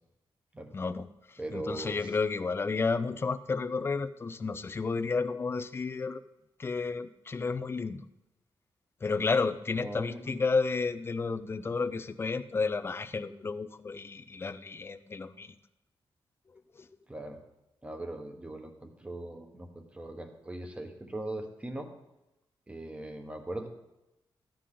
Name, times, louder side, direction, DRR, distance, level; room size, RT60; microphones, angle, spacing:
voice 1, 0.7-6.2 6.6-8.0 9.0-15.6 16.8-16.9, left 4 dB, 25° left, 11 dB, 0.5 m, -32 dB
voice 2, 1.4-2.1 9.8-10.3 17.1-17.4 17.8-21.9 22.7-23.7, right 1 dB, 15° right, 5 dB, 1.2 m, -40 dB
14.5 x 10.0 x 3.8 m, 0.93 s
wide cardioid pair, 165°, 10 cm